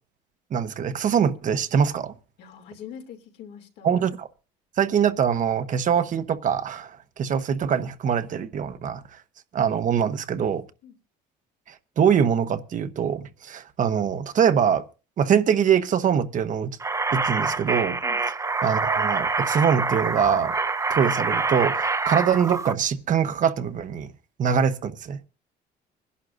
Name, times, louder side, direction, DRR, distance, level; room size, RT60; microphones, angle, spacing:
voice 1, 0.5-2.1 3.8-4.3 4.8-9.0 9.5-10.6 12.0-14.8 15.2-16.7 17.1-18.0 18.6-20.5 20.9-24.1 24.4-25.2, right 8 dB, 50° right, 1.0 m, -23 dB
voice 2, 2.4-4.0 10.8-10.9 18.0-18.2, left 8 dB, 80° left, 2.8 m, -43 dB
sound 1, 16.8-22.7, right 3 dB, 20° right, 0.7 m, -26 dB
24.5 x 11.5 x 2.6 m
cardioid pair, 110°, 17 cm